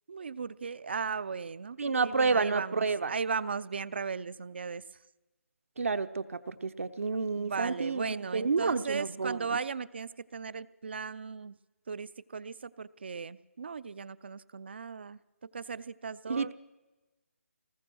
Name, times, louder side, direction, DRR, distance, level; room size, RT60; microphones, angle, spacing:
voice 1, 0.1-4.8 7.3-11.6 11.9-15.2 15.5-16.5, right 5 dB, 45° right, 18 dB, 0.6 m, -37 dB
voice 2, 1.8-3.1 5.8-9.6 16.3-16.5, right 4 dB, 60° right, 9 dB, 0.9 m, -30 dB
21.5 x 19.5 x 6.2 m, 1.1 s
hypercardioid pair, 170°, 8 cm